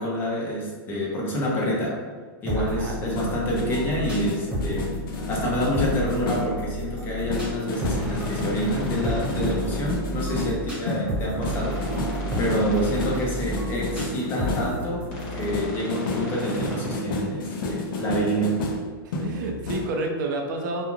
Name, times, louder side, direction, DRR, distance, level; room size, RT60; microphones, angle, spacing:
voice 1, 0.0-2.0 2.4-4.9 5.3-11.8 12.4-18.6, equal, 15° left, -4 dB, 0.5 m, -27 dB
sound 1, 2.5-15.6, equal, 10° right, 1.2 m, -32 dB
voice 2, 2.6-3.0 12.2-12.4 19.0-20.8, right 2 dB, 55° right, 2 dB, 0.5 m, -30 dB
sound 2, 3.1-6.6 7.3-14.8 15.5-19.9, left 2 dB, 65° left, 0.5 m, -31 dB
sound 3, 7.7-9.5 11.4-13.2 15.1-16.9, equal, 40° left, 0.9 m, -34 dB
2.3 x 2.3 x 3.0 m, 1.5 s
supercardioid pair, 165°, 12 cm